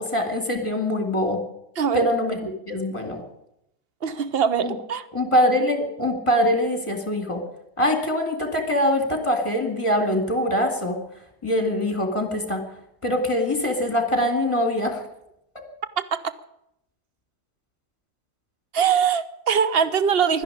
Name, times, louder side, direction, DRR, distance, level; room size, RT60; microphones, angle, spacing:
voice 1, 0.0-1.4 1.9-3.2 4.6-4.8 5.1-7.4 7.8-11.0 11.4-12.6 13.0-15.0 15.5-15.7, left 1 dB, 20° left, 6 dB, 2.5 m, -23 dB
voice 2, 1.8-2.1 4.0-5.0 16.0-16.2 18.7-20.4, right 7 dB, 45° right, 14 dB, 0.9 m, -22 dB
12.5 x 10.5 x 9.9 m, 0.80 s
omnidirectional pair, 1.7 m